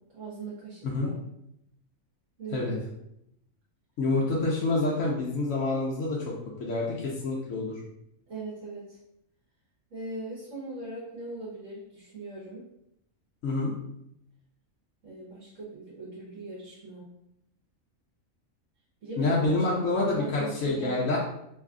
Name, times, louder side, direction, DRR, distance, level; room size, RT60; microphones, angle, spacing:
voice 1, 0.1-1.2 2.4-2.7 8.3-9.0 9.9-12.6 15.0-17.1 19.0-21.2, right 3 dB, 70° right, -7 dB, 1.3 m, -40 dB
voice 2, 4.0-6.3 6.6-7.8 13.4-13.7 19.2-21.2, left 2 dB, 70° left, -4 dB, 1.0 m, -27 dB
3.2 x 2.3 x 3.6 m, 0.80 s
omnidirectional pair, 1.4 m